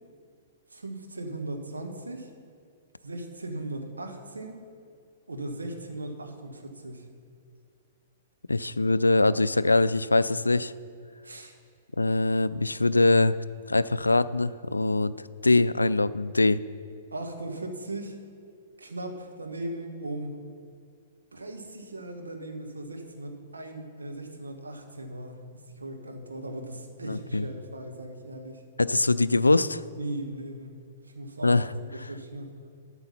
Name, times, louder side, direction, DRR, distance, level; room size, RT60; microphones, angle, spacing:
voice 1, 0.7-2.3 3.0-4.6 5.3-7.1 11.2-11.5 17.1-18.2 18.8-20.4 21.3-28.6 30.0-30.8 31.0-32.6, right 1 dB, 75° right, 3 dB, 1.4 m, -38 dB
voice 2, 8.5-10.7 12.0-13.4 13.7-15.1 15.4-16.6 27.1-27.4 28.8-29.8 31.4-31.7, left 2 dB, 80° left, 16 dB, 0.3 m, -23 dB
13.0 x 6.8 x 5.7 m, 2.3 s
figure-of-eight pair, 110°, 0 cm